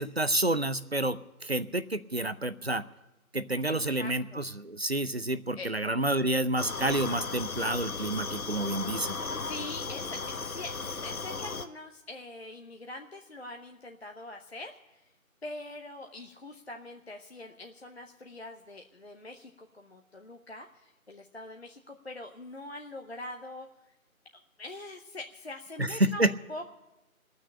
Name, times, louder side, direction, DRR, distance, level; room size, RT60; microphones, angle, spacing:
voice 1, 0.0-2.8 3.3-9.2 25.8-26.3, right 1 dB, 50° right, 14 dB, 0.5 m, -29 dB
voice 2, 3.7-4.4 5.6-5.7 6.1-6.2 9.4-14.8 15.4-23.7 24.3-26.7, left 2 dB, 45° left, 3 dB, 0.7 m, -43 dB
sound 1, 6.6-11.7, left 4 dB, 75° left, 1.0 m, -36 dB
19.0 x 6.4 x 9.9 m, 0.99 s
figure-of-eight pair, 170°, 43 cm